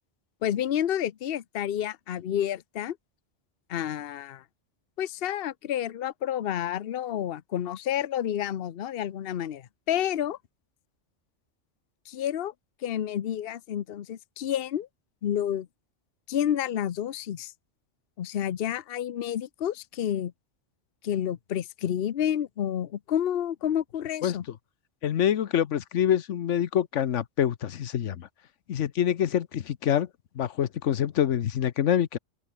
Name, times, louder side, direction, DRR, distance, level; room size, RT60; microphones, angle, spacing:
voice 1, 0.4-3.0 3.7-4.4 5.0-10.4 12.1-12.5 12.8-14.9 15.2-15.7 16.3-17.5 18.2-20.3 21.0-24.4, left 10 dB, 60° left, 0.9 m, -29 dB
voice 2, 25.0-28.3 28.7-30.1 30.3-32.2, left 10 dB, 90° left, 1.2 m, -26 dB
open air
omnidirectional pair, 1.2 m